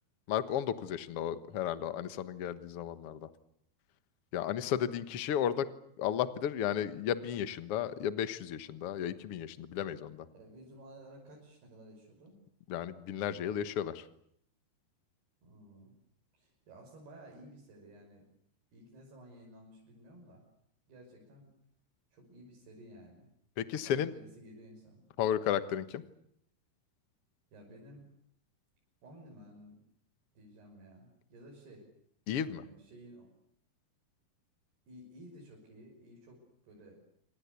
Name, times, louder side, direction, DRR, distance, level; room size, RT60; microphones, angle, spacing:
voice 1, 0.3-3.3 4.3-5.7 6.0-10.3 12.7-14.0 23.6-24.1 25.2-26.0 32.3-32.6, left 10 dB, 75° left, 12 dB, 1.3 m, -33 dB
voice 2, 10.3-12.4 15.4-15.9 16.3-18.2 18.7-20.4 20.9-21.5 22.1-23.3 23.8-25.0 27.5-28.0 29.0-29.8 30.3-31.9 32.4-33.3 34.9-37.0, right 1 dB, 70° right, -2 dB, 7.9 m, -54 dB
27.5 x 25.5 x 8.3 m, 0.71 s
omnidirectional pair, 4.8 m